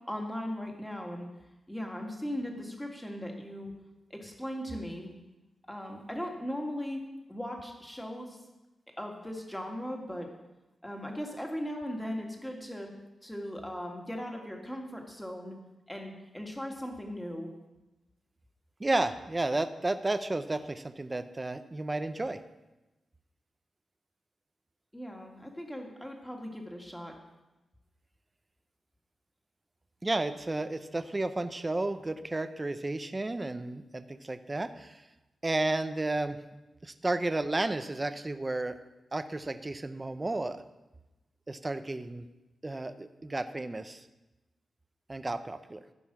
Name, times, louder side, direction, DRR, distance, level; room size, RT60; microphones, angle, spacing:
voice 1, 0.1-1.3 1.7-3.7 4.1-5.1 5.7-7.0 7.3-8.4 9.0-10.3 10.8-12.9 13.2-15.6 15.9-17.5 24.9-27.2, equal, 5° left, 1 dB, 2.1 m, -38 dB
voice 2, 18.8-22.4 30.0-35.0 35.4-36.4 36.8-38.8 39.1-40.6 41.5-42.2 42.6-44.0 45.1-45.8, right 2 dB, 25° right, 10 dB, 0.7 m, -32 dB
14.5 x 5.4 x 6.1 m, 1.0 s
cardioid pair, 90°, 0 cm